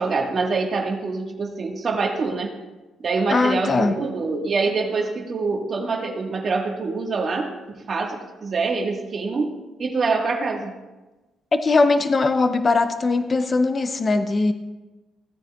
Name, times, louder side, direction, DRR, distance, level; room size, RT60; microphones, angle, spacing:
voice 1, 0.0-2.5 3.0-7.5 7.9-9.5 9.8-10.7, right 4 dB, 45° right, 2 dB, 1.5 m, -25 dB
voice 2, 3.3-4.0 11.5-14.5, left 3 dB, 35° left, 9 dB, 0.6 m, -20 dB
16.5 x 9.0 x 2.3 m, 1.2 s
cardioid pair, 90°, 0 cm